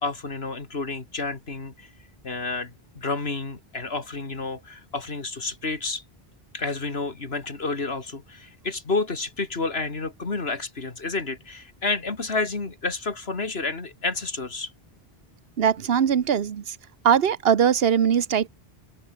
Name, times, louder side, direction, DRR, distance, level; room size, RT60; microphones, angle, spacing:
voice 1, 0.0-1.9 2.2-6.0 6.5-14.7, left 3 dB, 75° left, 2.6 m, -30 dB
voice 2, 15.6-16.7 17.0-18.5, right 8 dB, 70° right, 1.2 m, -21 dB
omnidirectional pair, 1.1 m